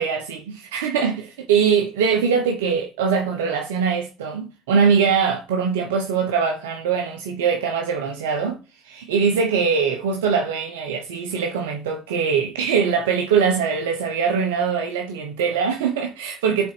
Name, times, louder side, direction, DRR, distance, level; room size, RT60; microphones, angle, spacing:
voice 1, 0.0-8.6 8.8-16.7, right 6 dB, 90° right, 0.9 m, -22 dB
5.9 x 4.3 x 5.9 m
hypercardioid pair, 65°, 0 cm